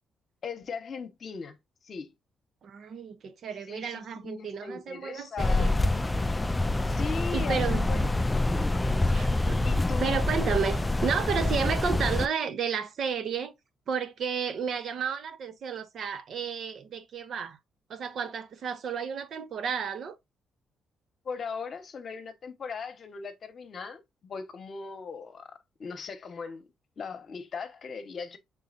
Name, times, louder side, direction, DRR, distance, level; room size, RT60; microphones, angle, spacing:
voice 1, 0.4-1.6 1.8-2.1 3.7-5.8 6.9-8.1 8.8-9.1 9.6-10.2 21.2-26.6 27.0-28.4, left 5 dB, 50° left, 1.0 m, -38 dB
voice 2, 2.6-5.7 7.3-8.2 9.1-9.7 10.0-13.5 13.9-17.6 17.9-20.2, right 6 dB, 60° right, 0.7 m, -32 dB
sound 1, 5.4-12.3, left 2 dB, 15° left, 0.3 m, -26 dB
5.5 x 3.8 x 2.5 m
cardioid pair, 90°, 0 cm